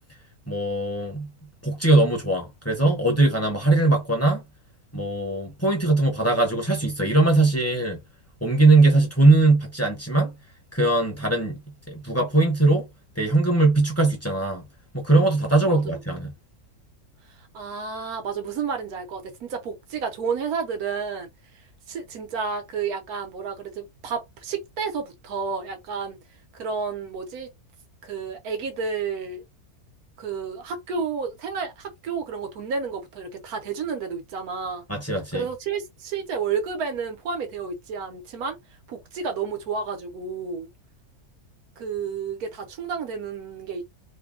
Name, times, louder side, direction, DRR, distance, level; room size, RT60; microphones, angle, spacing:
voice 1, 0.5-1.3 1.6-4.4 4.9-8.0 8.4-10.3 10.7-11.6 11.9-12.8 13.2-14.6 14.9-16.3 34.9-35.5, right 2 dB, 15° left, 0.7 m, -20 dB
voice 2, 15.7-16.0 17.3-21.3 21.5-26.2 26.5-27.5 28.0-29.4 30.2-34.8 35.3-38.6 38.9-40.7 41.8-43.8, right 5 dB, 80° right, 1.4 m, -31 dB
3.1 x 2.2 x 3.7 m
omnidirectional pair, 1.6 m